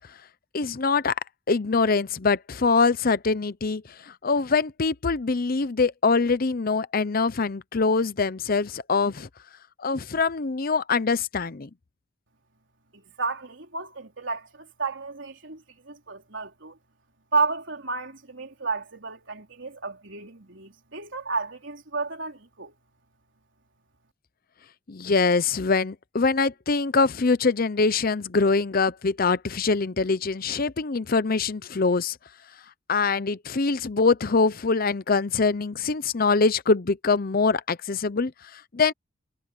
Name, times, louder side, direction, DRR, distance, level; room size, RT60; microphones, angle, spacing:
voice 1, 0.5-1.1 1.5-9.3 9.8-11.7 24.9-32.2 32.9-38.9, left 4 dB, 50° left, 0.7 m, -24 dB
voice 2, 12.9-16.8 17.3-22.7, right 4 dB, 70° right, 3.9 m, -32 dB
head